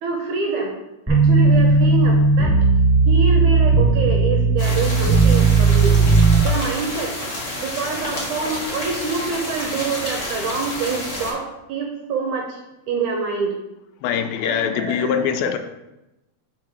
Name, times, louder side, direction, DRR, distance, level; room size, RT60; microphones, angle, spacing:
voice 1, 0.0-0.7 1.1-2.6 3.1-6.0 6.4-7.1 7.6-12.6 12.9-13.5 14.4-15.5, right 5 dB, 75° right, 1 dB, 1.9 m, -26 dB
sound 1, 1.1-6.4, right 3 dB, ahead, 1.0 m, -15 dB
sound 2, 4.6-11.3, left 1 dB, 65° left, 0.7 m, -30 dB
voice 2, 14.0-15.6, left 8 dB, 85° left, 8 dB, 2.4 m, -22 dB
5.0 x 4.8 x 5.9 m, 0.95 s
omnidirectional pair, 4.2 m